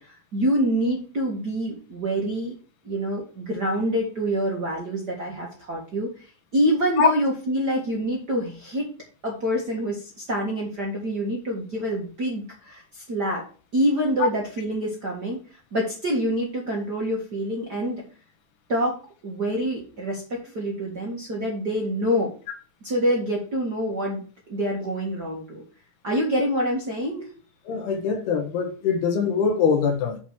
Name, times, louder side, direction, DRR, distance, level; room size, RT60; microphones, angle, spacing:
voice 1, 0.0-2.5 2.8-8.9 9.2-13.5 13.7-18.0 18.7-22.3 22.8-24.2 24.5-25.6 26.0-27.3, equal, 40° right, 1.5 m, -26 dB
voice 2, 27.7-30.2, left 6 dB, 90° left, 3.5 m, -22 dB
8.0 x 4.6 x 6.1 m
omnidirectional pair, 4.4 m